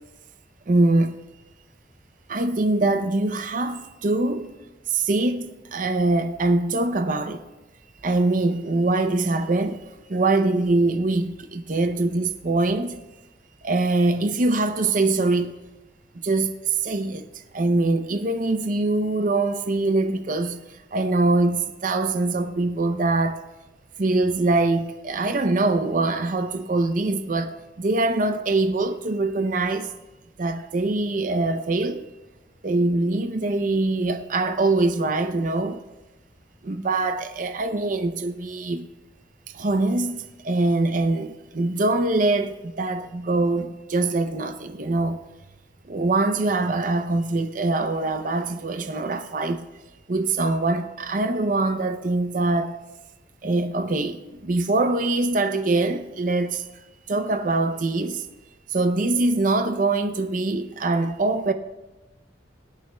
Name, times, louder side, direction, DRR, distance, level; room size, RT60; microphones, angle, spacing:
voice 1, 0.7-1.2 2.3-4.5 4.9-7.4 8.0-9.8 10.1-13.0 13.6-15.5 16.2-17.2 17.5-20.6 20.9-23.4 24.0-29.9 30.4-32.0 32.6-35.8 36.6-38.9 39.5-45.2 45.9-49.6 50.1-52.8 53.4-56.6 57.1-58.3 58.7-61.5, right 2 dB, 45° right, 0.5 m, -23 dB
23.5 x 9.5 x 2.2 m
head